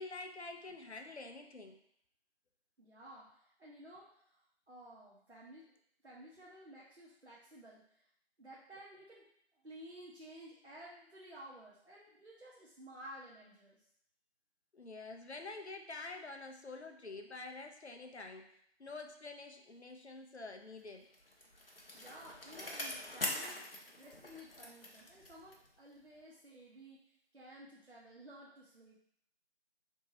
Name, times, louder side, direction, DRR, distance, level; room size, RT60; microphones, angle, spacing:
voice 1, 0.0-1.8 14.7-18.5 18.8-21.1, left 3 dB, 85° left, 4 dB, 0.7 m, -47 dB
voice 2, 2.8-5.7 6.0-8.1 8.4-9.2 9.5-13.9 21.9-29.0, right 1 dB, 75° right, -5 dB, 1.0 m, -54 dB
Bicycle, 20.9-25.8 26.1-26.2, left 1 dB, 60° left, 0.8 m, -44 dB
3.6 x 2.7 x 4.0 m, 0.70 s
figure-of-eight pair, 170°, 33 cm